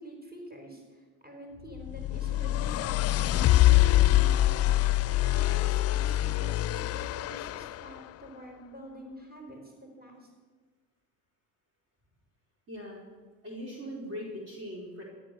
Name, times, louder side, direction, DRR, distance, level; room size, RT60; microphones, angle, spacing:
voice 1, 0.0-4.7 5.2-10.3, right 1 dB, 25° right, 1 dB, 4.9 m, -46 dB
sound 1, 1.8-7.9, left 15 dB, 45° left, 0.5 m, -24 dB
voice 2, 12.7-13.0 13.4-15.0, equal, 45° right, -2 dB, 4.6 m, -40 dB
13.5 x 11.5 x 6.9 m, 1.4 s
supercardioid pair, 85°, 35 cm